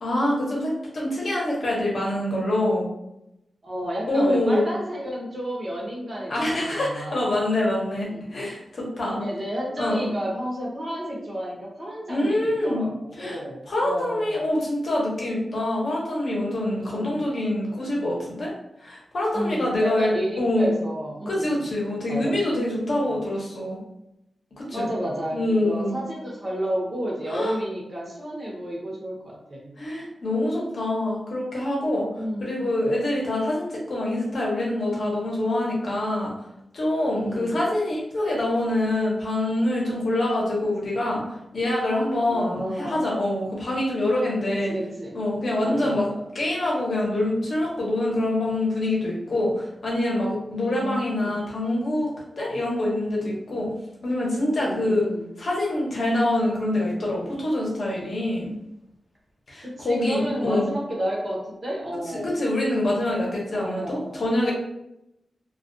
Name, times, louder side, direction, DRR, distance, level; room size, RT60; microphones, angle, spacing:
voice 1, 0.0-2.8 4.1-4.6 6.3-9.2 9.8-10.1 12.1-12.8 13.2-13.4 13.7-18.5 18.8-20.7 21.3-23.8 24.6-24.9 25.3-25.9 27.3-27.6 29.8-32.1 32.4-36.3 36.7-41.2 41.5-44.7 45.1-46.1 46.3-53.7 54.0-55.1 55.4-58.5 59.5-60.7 62.1-64.5, left 1 dB, 60° left, -4 dB, 0.7 m, -25 dB
voice 2, 3.6-7.2 8.0-8.3 9.1-14.4 16.8-17.3 19.3-21.7 22.1-22.4 23.1-23.2 24.7-29.7 32.2-32.7 37.2-37.6 42.3-43.0 44.5-45.2 45.6-46.2 50.5-51.4 54.6-55.3 59.6-62.3 63.5-64.5, equal, 35° right, -3 dB, 0.6 m, -32 dB
2.2 x 2.2 x 2.5 m, 0.85 s
wide cardioid pair, 135°, 0 cm